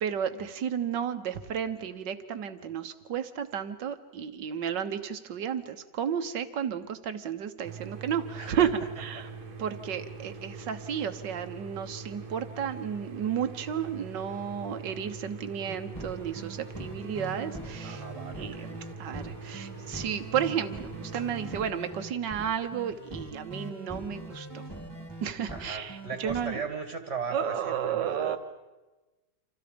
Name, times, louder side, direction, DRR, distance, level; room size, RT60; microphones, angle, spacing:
voice 1, 0.0-9.3 9.6-18.0 18.3-24.6 25.2-26.6 27.3-28.4, right 8 dB, 65° right, 10 dB, 1.8 m, -32 dB
sound 1, 7.7-21.6, right 5 dB, 80° right, 2.4 m, -43 dB
voice 2, 8.4-8.7 17.8-18.7 25.5-28.4, right 5 dB, 35° right, 6 dB, 2.0 m, -36 dB
sound 2, 15.7-26.5, right 1 dB, 10° left, 3.4 m, -42 dB
29.0 x 26.5 x 5.2 m, 1.1 s
omnidirectional pair, 2.1 m